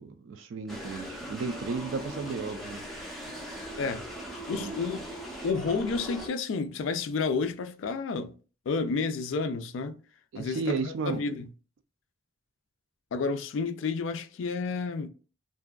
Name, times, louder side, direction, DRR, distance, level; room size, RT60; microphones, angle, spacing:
voice 1, 0.0-2.8 4.5-4.7 10.3-11.2, right 4 dB, 70° right, 0.3 m, -34 dB
sound 1, 0.7-6.3, equal, ahead, 0.4 m, -40 dB
voice 2, 4.5-5.0 5.4-8.3 8.7-10.0 10.4-11.5 13.1-15.1, left 4 dB, 70° left, 0.3 m, -30 dB
2.5 x 2.2 x 2.2 m
head